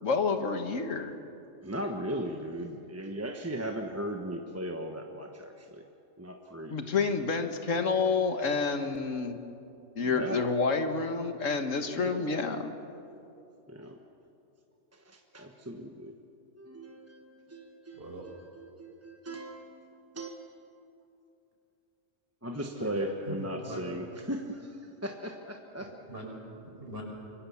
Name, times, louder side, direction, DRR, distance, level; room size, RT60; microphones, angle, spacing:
voice 1, 0.0-1.2 6.7-9.4 10.0-12.7, left 4 dB, 85° left, 7 dB, 1.8 m, -29 dB
voice 2, 1.6-5.9 6.2-6.8 10.0-10.5 11.8-12.4 13.7-14.0 15.0-16.1 16.6-20.3 22.4-25.9, right 1 dB, 10° right, 3 dB, 1.2 m, -38 dB
voice 3, 18.0-18.3 22.8-23.8 25.8-26.3 26.6-27.0, right 1 dB, 50° right, -1 dB, 6.0 m, -41 dB
26.0 x 23.5 x 7.2 m, 2.7 s
omnidirectional pair, 1.3 m